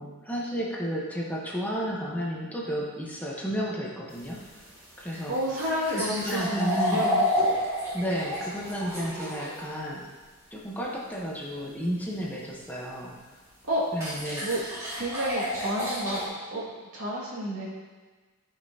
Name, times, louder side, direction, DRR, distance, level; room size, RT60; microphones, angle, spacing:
voice 1, 0.0-4.4 5.0-5.4 5.9-7.2 7.9-10.1 10.5-13.2 13.9-14.5, equal, 10° left, -4 dB, 1.0 m, -32 dB
sound 1, 4.1-9.7 12.8-12.9 14.0-16.3, left 1 dB, 15° right, 1.9 m, -30 dB
voice 2, 5.3-7.3 13.6-13.8 14.4-14.6 15.0-16.2 16.5-16.6 16.9-17.7, equal, 75° right, -5 dB, 2.2 m, -30 dB
12.5 x 5.3 x 2.8 m, 1.4 s
head